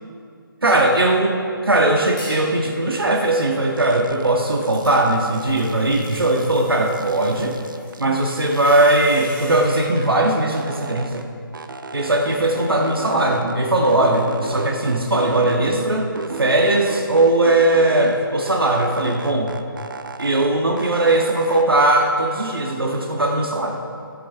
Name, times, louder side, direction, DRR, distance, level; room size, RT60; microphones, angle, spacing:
voice 1, 0.6-1.4 1.6-7.6 8.0-11.2 11.9-16.0 16.4-19.5 20.2-23.8, right 2 dB, 75° right, 1 dB, 1.5 m, -19 dB
sound 1, 2.2-2.5 2.9-9.7, equal, 10° left, 2.9 m, -43 dB
sound 2, 3.8-4.3 4.6-6.6 6.9-8.9 9.2-11.2 11.5-13.6 13.8-15.9 16.2-18.2 18.5-20.5 20.8-21.9, right 3 dB, 60° right, 0.7 m, -34 dB
16.5 x 7.7 x 3.4 m, 2.3 s
figure-of-eight pair, 145°, 12 cm